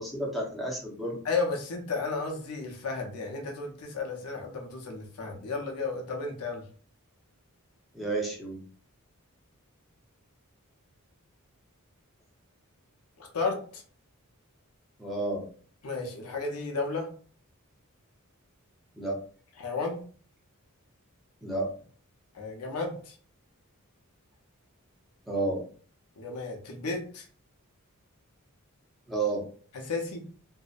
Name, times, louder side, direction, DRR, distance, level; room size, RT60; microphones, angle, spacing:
voice 1, 0.0-1.2 7.9-8.6 15.0-15.5 19.0-19.2 21.4-21.7 25.3-25.6 29.1-29.5, right 2 dB, ahead, -4 dB, 0.6 m, -31 dB
voice 2, 1.2-6.6 13.2-13.8 15.8-17.1 19.6-20.0 22.3-23.2 26.2-27.3 29.8-30.3, left 3 dB, 85° left, 1 dB, 0.6 m, -33 dB
2.6 x 2.0 x 2.4 m, 0.43 s
head